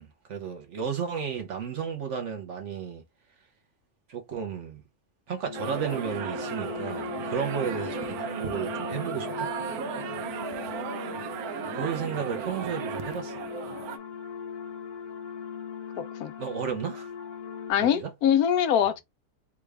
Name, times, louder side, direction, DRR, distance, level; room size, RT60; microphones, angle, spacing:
voice 1, 0.0-3.0 4.1-4.8 5.3-9.5 11.7-13.4 16.4-17.1 17.8-18.1, right 7 dB, 60° right, 1.0 m, -33 dB
sound 1, 5.4-17.7, left 7 dB, 70° left, 1.4 m, -39 dB
sound 2, 5.5-14.0, right 8 dB, 85° right, 1.1 m, -35 dB
voice 2, 16.0-16.3 17.7-19.0, left 9 dB, 90° left, 1.1 m, -23 dB
3.6 x 2.3 x 3.2 m
omnidirectional pair, 1.5 m